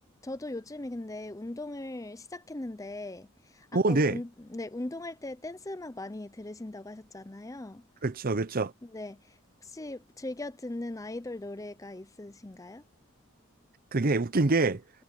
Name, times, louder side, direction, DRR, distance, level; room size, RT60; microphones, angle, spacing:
voice 1, 0.2-7.8 8.8-12.8, left 2 dB, 15° left, 0.6 m, -39 dB
voice 2, 3.7-4.2 8.0-8.7 13.9-14.8, right 3 dB, 40° right, 0.7 m, -25 dB
head